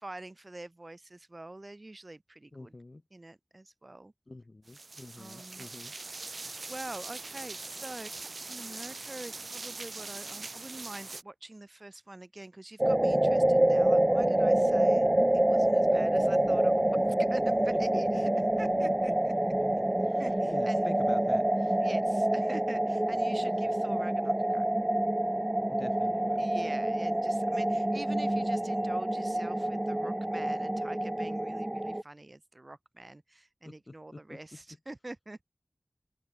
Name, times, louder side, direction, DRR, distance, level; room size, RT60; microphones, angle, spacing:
voice 1, 0.0-2.7 3.1-4.1 5.2-5.7 6.7-15.1 15.3-18.3 18.6-19.3 20.2-20.9 21.8-24.7 26.4-35.4, right 2 dB, 40° right, 1.9 m, -45 dB
voice 2, 2.5-3.0 4.3-5.9 18.3-18.7 19.1-19.2 20.1-21.7 25.7-26.5 33.6-34.4, left 2 dB, 50° left, 4.0 m, -46 dB
sound 1, 4.7-11.2, right 3 dB, 80° right, 0.9 m, -42 dB
sound 2, 12.8-32.0, right 1 dB, 25° right, 0.6 m, -27 dB
wide cardioid pair, 60°, 0 cm